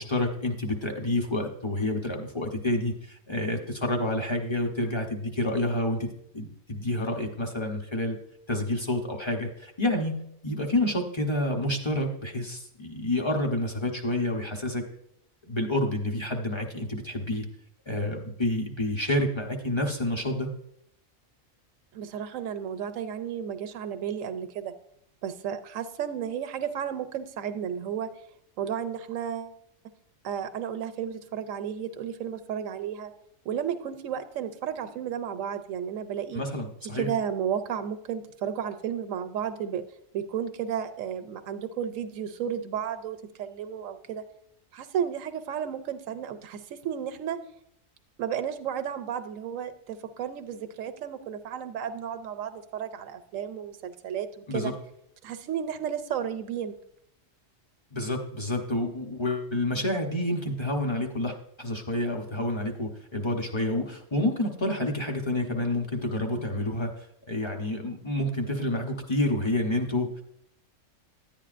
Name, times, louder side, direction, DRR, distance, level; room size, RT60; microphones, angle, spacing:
voice 1, 0.0-6.1 6.3-8.2 8.5-10.1 10.4-14.8 15.5-17.4 17.9-20.5 36.3-37.1 54.5-54.7 57.9-66.9 67.3-70.1, left 1 dB, 25° left, 2 dB, 0.8 m, -28 dB
voice 2, 21.9-24.7 25.2-28.1 28.6-29.6 30.2-33.1 33.5-36.4 36.9-39.8 40.1-44.2 44.7-47.4 48.2-54.7 55.2-56.7, right 8 dB, 80° right, 9 dB, 1.0 m, -33 dB
10.5 x 9.0 x 2.5 m, 0.73 s
omnidirectional pair, 1.4 m